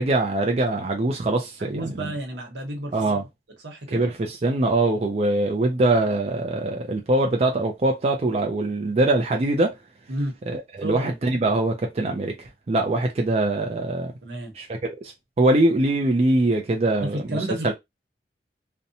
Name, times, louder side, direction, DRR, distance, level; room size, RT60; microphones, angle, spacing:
voice 1, 0.0-2.1 2.9-3.2 3.9-9.8 10.5-14.1 14.6-17.7, right 2 dB, 35° right, 0.4 m, -23 dB
voice 2, 1.6-2.9 3.6-4.1 10.1-10.4 10.8-11.1 14.2-14.5 17.0-17.7, right 1 dB, 85° right, 1.0 m, -31 dB
2.7 x 2.1 x 2.6 m
head